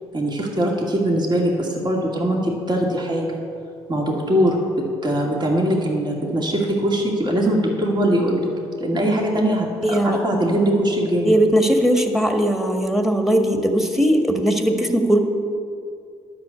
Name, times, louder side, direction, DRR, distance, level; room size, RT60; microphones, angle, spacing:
voice 1, 0.1-3.4 3.9-8.5 8.8-11.3, right 1 dB, 35° right, -1 dB, 2.3 m, -21 dB
voice 2, 9.8-10.2 11.2-15.2, right 1 dB, ahead, 4 dB, 1.8 m, -19 dB
11.0 x 6.2 x 8.2 m, 2.4 s
hypercardioid pair, 50°, 13 cm